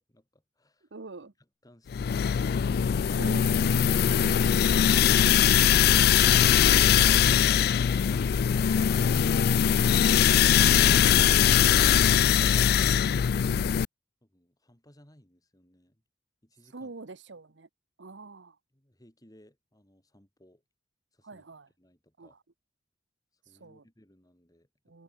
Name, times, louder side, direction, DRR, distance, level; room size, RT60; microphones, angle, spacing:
voice 1, 0.0-0.9 1.4-3.3 14.2-16.0 16.4-16.9 18.7-20.6 21.1-21.5 21.8-22.4 23.4-24.7, equal, 20° left, 4.6 m, -59 dB
voice 2, 0.9-1.3 3.2-4.3 5.2-5.7 6.0-6.9 13.4-13.8 16.7-17.7 18.0-18.6 21.2-21.7 22.2-22.4 23.6-23.8 24.9-25.0, right 3 dB, 75° right, 1.0 m, -45 dB
sound 1, 1.9-13.8, left 9 dB, 55° left, 0.3 m, -21 dB
head